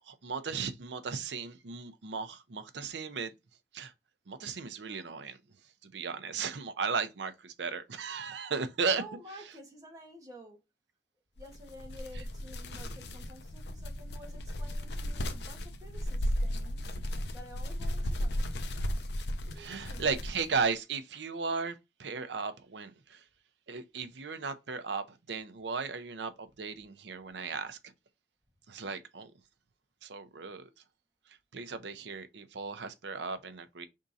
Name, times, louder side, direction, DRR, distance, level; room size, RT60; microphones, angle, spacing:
voice 1, 0.1-3.3 3.7-3.9 4.3-5.4 5.8-9.0 19.6-21.7 22.0-23.2 23.7-27.8 28.7-29.3 30.0-30.7 31.5-33.9, right 5 dB, 80° right, 0.7 m, -35 dB
voice 2, 8.9-10.6 11.4-16.9 17.3-18.5 19.5-20.1, equal, 20° right, 1.4 m, -51 dB
sound 1, 11.4-20.6, equal, 65° left, 0.6 m, -35 dB
5.1 x 3.6 x 2.7 m
head